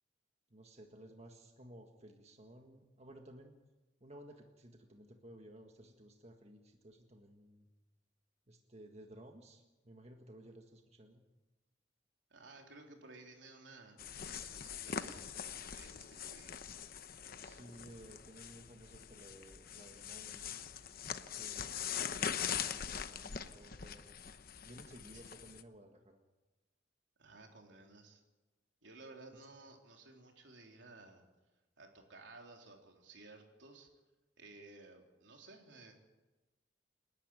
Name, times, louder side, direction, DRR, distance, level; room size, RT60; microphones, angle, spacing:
voice 1, 0.5-3.5 4.0-7.7 8.5-11.2 17.4-20.6 21.0-21.9 22.4-24.2 24.6-26.2, right 1 dB, 35° right, 3 dB, 1.7 m, -56 dB
voice 2, 12.3-16.6 25.1-25.2 27.2-28.2 28.8-31.2 31.8-33.9 34.4-35.9, right 3 dB, 80° right, 2 dB, 3.6 m, -56 dB
sound 1, 14.0-25.6, left 8 dB, 55° left, 0.9 m, -43 dB
29.0 x 11.5 x 9.1 m, 1.1 s
head